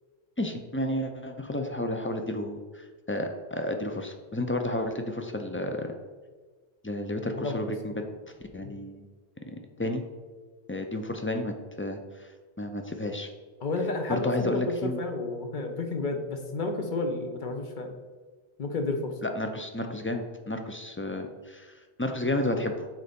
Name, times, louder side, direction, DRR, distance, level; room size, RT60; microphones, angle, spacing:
voice 1, 0.4-5.9 6.8-8.0 8.5-9.0 9.8-10.0 10.7-12.3 12.6-13.3 14.1-15.0 19.2-22.9, left 1 dB, 20° left, 5 dB, 0.3 m, -31 dB
voice 2, 13.6-17.9 18.6-19.1, left 3 dB, 55° left, 5 dB, 1.0 m, -31 dB
6.5 x 4.1 x 5.1 m, 1.4 s
omnidirectional pair, 1.0 m